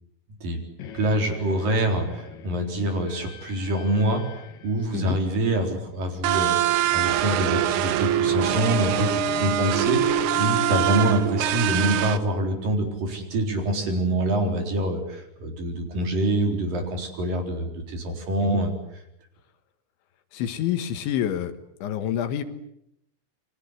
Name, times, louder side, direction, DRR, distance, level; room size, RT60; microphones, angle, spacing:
sound 1, 0.8-12.8, left 6 dB, 55° left, 3.1 m, -37 dB
voice 1, 0.9-4.2 4.6-18.7, right 1 dB, 45° right, 4 dB, 5.4 m, -25 dB
sound 2, 6.2-12.2, right 12 dB, 90° right, 3.9 m, -24 dB
voice 2, 20.3-21.5 21.8-22.4, left 10 dB, 75° left, 9 dB, 3.8 m, -27 dB
29.5 x 23.5 x 8.2 m, 0.79 s
omnidirectional pair, 5.6 m